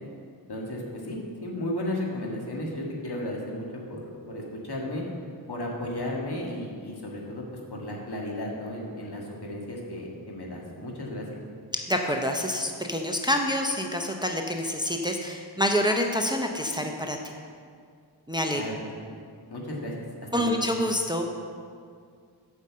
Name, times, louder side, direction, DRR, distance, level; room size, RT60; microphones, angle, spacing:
voice 1, 0.5-5.0 5.5-7.4 7.7-11.3 18.5-18.7 19.5-19.9 20.4-20.6, left 1 dB, 65° left, -2 dB, 1.8 m, -34 dB
voice 2, 11.7-17.3 18.3-18.6 20.3-21.3, equal, 10° right, 2 dB, 0.6 m, -27 dB
8.0 x 5.5 x 7.4 m, 2.2 s
wide cardioid pair, 85°, 42 cm